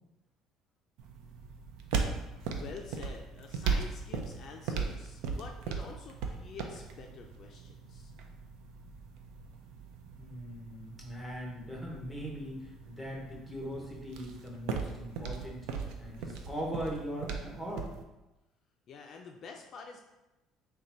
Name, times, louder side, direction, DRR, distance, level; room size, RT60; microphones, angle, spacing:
sound 1, 1.0-18.0, right 5 dB, 80° right, 0.4 m, -38 dB
voice 1, 2.5-8.1 18.9-20.0, left 5 dB, 45° left, 2 dB, 0.4 m, -48 dB
voice 2, 10.1-17.9, equal, ahead, -2 dB, 1.0 m, -40 dB
3.8 x 2.2 x 4.3 m, 0.99 s
cardioid pair, 130°, 0 cm